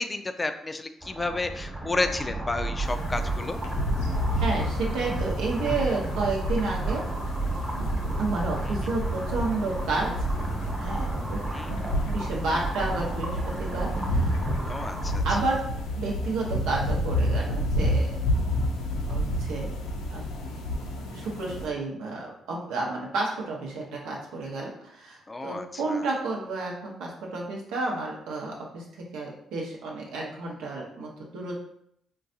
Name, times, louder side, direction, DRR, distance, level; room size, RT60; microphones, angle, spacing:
voice 1, 0.0-3.6 11.5-11.7 14.7-15.2 25.3-25.6, left 2 dB, 25° left, 8 dB, 0.3 m, -31 dB
sound 1, 1.0-15.2, right 2 dB, 30° right, 1.0 m, -32 dB
sound 2, 2.8-21.7, left 1 dB, 85° left, 0.5 m, -30 dB
voice 2, 4.4-7.1 8.2-10.3 10.8-11.4 12.0-14.4 15.2-15.6 16.0-18.4 19.1-19.7 20.1-20.2 21.1-31.6, right 3 dB, 80° right, -2 dB, 0.8 m, -31 dB
3.9 x 2.2 x 2.6 m, 0.73 s
supercardioid pair, 55°, 0 cm